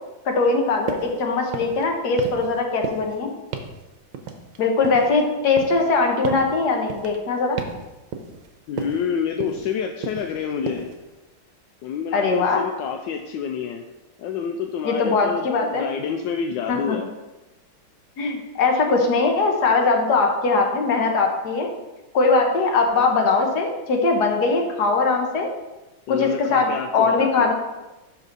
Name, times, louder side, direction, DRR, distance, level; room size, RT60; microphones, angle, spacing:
voice 1, 0.3-3.3 4.6-7.6 12.1-12.6 14.8-15.9 16.7-17.0 18.2-21.7 22.1-25.5 26.1-27.5, left 3 dB, 55° left, 2 dB, 1.6 m, -21 dB
sound 1, 0.9-1.2 1.5-1.9 2.2-2.6 2.8-3.2 3.5-3.8 4.1-5.2 5.6-5.9 6.2-6.5 6.9-7.2 7.6-7.9 8.1-8.5 8.8-9.1 9.4-9.7 10.0-10.4 10.7-11.0, right 6 dB, 70° right, 1.4 m, -32 dB
voice 2, 8.7-10.9 11.8-13.8 14.2-17.1 26.1-27.5, left 7 dB, 75° left, 4 dB, 1.1 m, -28 dB
12.0 x 4.6 x 3.9 m, 1.1 s
omnidirectional pair, 2.3 m